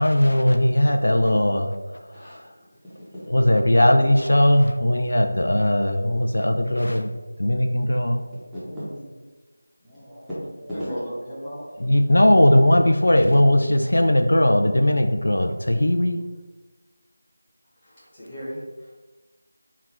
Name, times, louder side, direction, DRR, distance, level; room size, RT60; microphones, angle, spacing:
voice 1, 0.0-1.7 2.1-2.4 3.3-7.1 7.4-8.2 11.8-16.2, left 1 dB, 85° left, 5 dB, 0.4 m, -18 dB
voice 2, 2.1-2.5 2.8-3.2 8.5-9.1 9.8-10.9, equal, ahead, -16 dB, 0.6 m, -36 dB
voice 3, 10.7-11.8 17.8-18.9, equal, 20° left, -9 dB, 1.2 m, -36 dB
3.7 x 2.3 x 4.2 m, 1.2 s
figure-of-eight pair, 170°, 0 cm